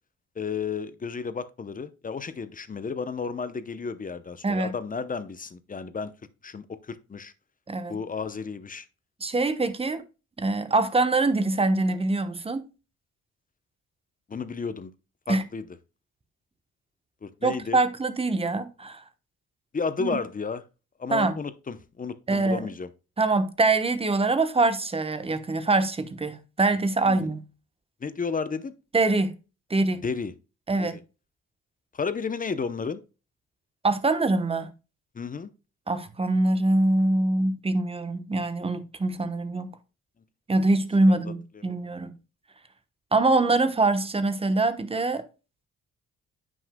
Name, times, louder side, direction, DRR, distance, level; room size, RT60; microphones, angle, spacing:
voice 1, 0.4-6.1 6.4-7.3 7.9-8.9 14.3-14.9 15.3-15.6 17.2-17.8 19.7-20.6 21.0-22.9 27.1-27.3 28.0-28.7 30.0-30.3 30.8-31.0 31.9-33.0 35.1-35.5 41.2-41.6, left 5 dB, 25° left, 0.7 m, -32 dB
voice 2, 9.2-10.0 10.4-12.7 15.3-15.5 17.4-19.0 20.0-20.2 21.1-21.4 22.3-22.7 23.2-27.4 28.9-29.4 29.7-30.0 30.7-31.0 33.8-34.7 35.9-39.7 40.5-42.1 43.1-45.2, right 2 dB, 20° right, 1.0 m, -24 dB
9.2 x 6.2 x 2.2 m
cardioid pair, 90°, 30 cm